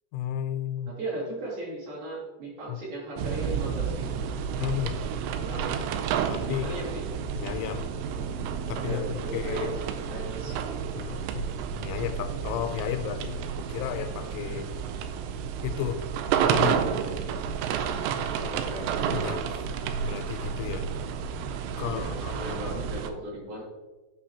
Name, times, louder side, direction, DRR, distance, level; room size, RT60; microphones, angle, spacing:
voice 1, 0.1-0.9 2.7-2.8 4.6-4.9 6.3-6.8 7.4-7.9 8.7-9.0 9.3-9.7 10.9-14.7 15.6-16.0 16.4-16.9 19.1-19.6 20.0-20.9 21.8-22.8, left 10 dB, 90° left, 7 dB, 3.1 m, -33 dB
voice 2, 1.0-4.3 5.3-5.7 6.4-7.0 8.8-9.8 10.1-10.6 18.4-18.8 21.8-22.1 22.4-23.6, right 1 dB, 55° right, -6 dB, 3.9 m, -37 dB
sound 1, 3.2-23.1, right 7 dB, 85° right, 2.6 m, -31 dB
12.0 x 5.5 x 2.9 m, 1.2 s
omnidirectional pair, 5.5 m